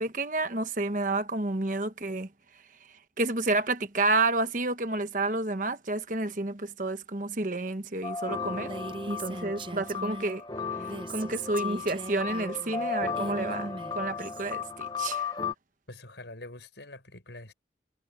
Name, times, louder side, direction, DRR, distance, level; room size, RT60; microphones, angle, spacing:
voice 1, 0.0-2.3 3.2-8.7 9.1-10.4 11.1-15.3, right 2 dB, 45° right, 1.3 m, -30 dB
sound 1, 8.0-15.5, left 5 dB, 25° left, 1.0 m, -35 dB
Female speech woman speaking, 8.5-10.4 10.8-14.5, right 2 dB, 30° right, 0.7 m, -40 dB
voice 2, 15.9-17.5, left 2 dB, 85° left, 6.2 m, -45 dB
head